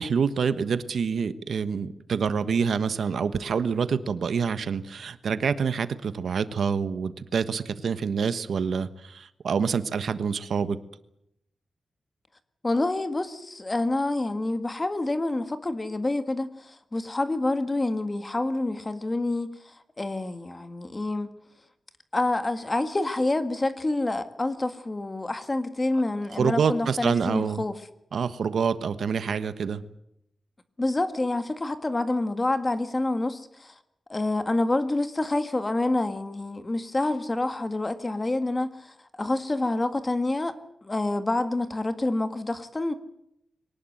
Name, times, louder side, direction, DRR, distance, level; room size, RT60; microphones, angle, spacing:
voice 1, 0.0-10.8 26.4-27.6 28.1-29.8, right 6 dB, 75° right, 12 dB, 1.3 m, -27 dB
voice 2, 12.6-21.3 22.1-27.7 30.8-33.7 34.1-42.9, left 2 dB, 20° left, 10 dB, 1.7 m, -27 dB
23.0 x 19.0 x 7.9 m, 0.78 s
wide cardioid pair, 160°, 0 cm